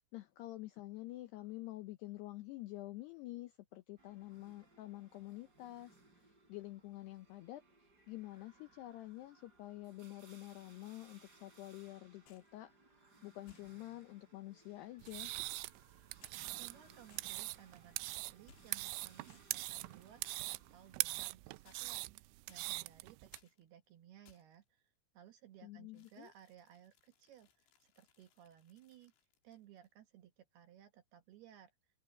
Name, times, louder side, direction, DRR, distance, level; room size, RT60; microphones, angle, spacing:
voice 1, 0.1-12.7 13.2-15.4 25.6-26.3, left 17 dB, 85° left, 2.4 m, -48 dB
sound 1, 4.0-20.9, right 3 dB, 20° right, 3.7 m, -65 dB
sound 2, 12.3-12.6 13.5-14.0 15.1-15.9 16.2-16.4 17.1-17.5 18.5-18.9 19.3-19.7 20.3-20.6 21.7-22.1 22.5-22.9 23.3-23.6 24.3-24.6 25.9-29.9, left 8 dB, 65° left, 4.8 m, -69 dB
sound 3, 15.0-23.4, right 22 dB, 85° right, 2.7 m, -42 dB
voice 2, 16.6-29.1 29.4-31.7, right 10 dB, 70° right, 2.6 m, -60 dB
open air
omnidirectional pair, 5.9 m